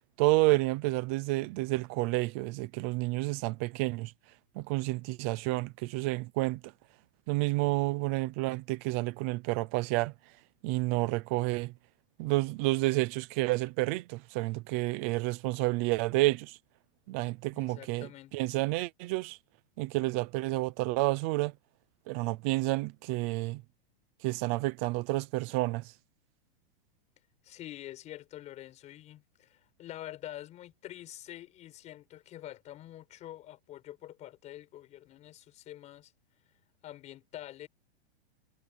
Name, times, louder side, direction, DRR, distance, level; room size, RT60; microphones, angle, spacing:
voice 1, 0.2-4.1 4.6-6.6 7.3-10.1 10.6-11.7 12.2-16.6 17.1-19.4 19.8-21.5 22.1-23.6 24.2-25.9, right 20 dB, 15° right, 0.3 m, -30 dB
voice 2, 17.5-18.3 27.4-36.1 36.8-37.7, left 13 dB, 20° left, 6.6 m, -46 dB
supercardioid pair, 170°, 31 cm